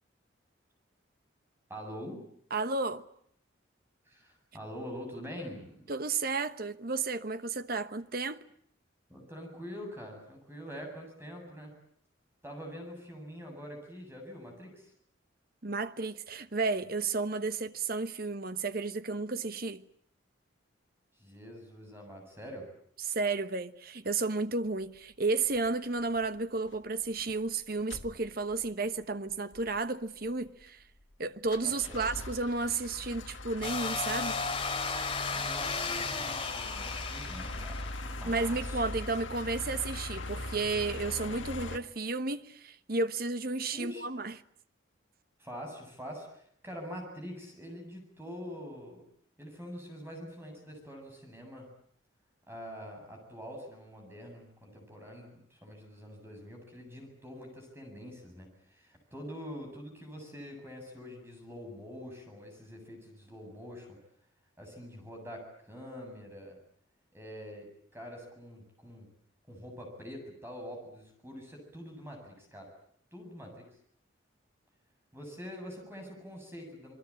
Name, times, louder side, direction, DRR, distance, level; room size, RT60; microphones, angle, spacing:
voice 1, 1.7-2.2 4.0-5.9 9.1-11.7 12.4-14.9 21.2-22.7 31.6-32.0 35.3-38.9 43.7-44.0 45.4-49.0 49.4-51.7 52.5-64.0 64.6-66.6 67.1-69.1 69.5-72.7 73.1-73.6 75.1-76.9, equal, 10° right, 7.8 m, -45 dB
voice 2, 2.5-3.1 5.9-8.4 15.6-19.8 23.0-30.8 31.2-34.4 38.2-44.4, right 3 dB, 50° right, 1.2 m, -32 dB
sound 1, 25.5-25.7 26.2-26.4 26.7-26.8 27.0-27.5 27.9-28.7 29.0-29.1 29.3-29.8 30.3-31.2 31.5-41.8, left 2 dB, 75° left, 1.7 m, -41 dB
sound 2, 33.6-38.0, left 4 dB, 25° left, 3.4 m, -34 dB
27.5 x 21.5 x 8.7 m
head